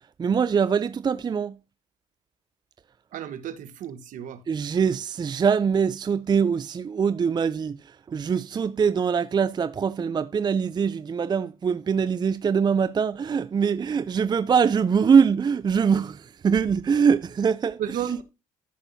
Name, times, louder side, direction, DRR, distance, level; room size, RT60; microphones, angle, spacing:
voice 1, 0.2-1.6 4.5-17.8, right 6 dB, 30° right, 0.5 m, -23 dB
voice 2, 3.1-4.4 17.8-18.2, right 9 dB, 65° right, 1.2 m, -32 dB
14.0 x 6.0 x 2.7 m
supercardioid pair, 75°, 14 cm